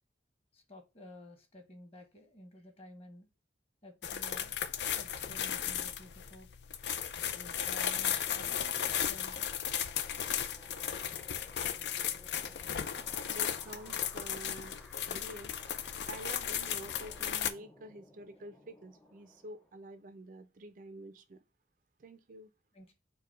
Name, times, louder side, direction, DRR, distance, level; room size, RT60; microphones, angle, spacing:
voice 1, 0.5-3.3 3.8-4.6 5.0-6.5 7.3-9.5 22.7-22.9, left 1 dB, 35° left, 1.2 m, -53 dB
sound 1, 4.0-17.5, left 9 dB, 75° left, 0.5 m, -35 dB
sound 2, 7.6-20.0, left 1 dB, 5° left, 0.6 m, -58 dB
voice 2, 13.3-14.8 15.1-15.5 16.1-21.4 22.0-22.5, right 1 dB, 50° right, 0.4 m, -48 dB
4.6 x 2.2 x 4.7 m
head